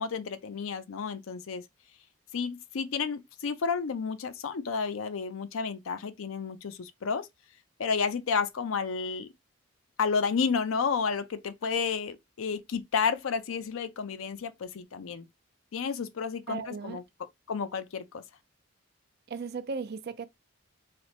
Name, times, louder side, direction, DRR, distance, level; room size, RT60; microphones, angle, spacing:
voice 1, 0.0-1.6 2.3-7.3 7.8-9.3 10.0-15.3 15.7-17.0 17.5-18.2, left 5 dB, 75° left, 0.5 m, -31 dB
voice 2, 16.5-17.0 19.3-20.3, right 5 dB, 50° right, 0.4 m, -36 dB
3.3 x 2.0 x 4.1 m
head